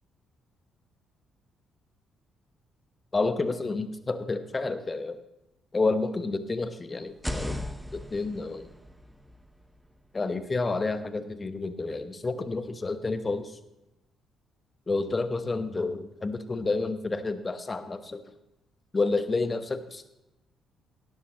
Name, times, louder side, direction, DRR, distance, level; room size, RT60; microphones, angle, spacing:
voice 1, 3.1-5.2 5.7-7.6 7.9-8.7 10.1-13.5 14.9-18.2 18.9-20.1, left 3 dB, 30° left, 11 dB, 1.1 m, -29 dB
sound 1, 7.1-10.9, left 1 dB, 5° right, 1.0 m, -38 dB
17.0 x 13.5 x 3.1 m, 0.92 s
figure-of-eight pair, 40°, 0 cm